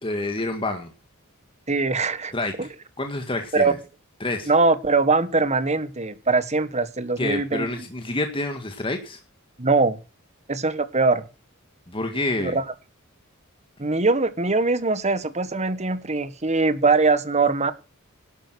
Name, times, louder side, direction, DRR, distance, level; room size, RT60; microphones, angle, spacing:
voice 1, 0.0-0.9 2.3-3.8 4.2-4.5 7.2-9.2 11.9-12.6, left 2 dB, 25° left, 5 dB, 1.8 m, -28 dB
voice 2, 1.7-2.3 3.5-3.7 4.5-7.7 9.6-10.0 10.5-11.2 12.4-12.6 13.8-17.7, right 3 dB, 30° right, 13 dB, 1.5 m, -22 dB
12.0 x 8.9 x 6.4 m, 0.31 s
head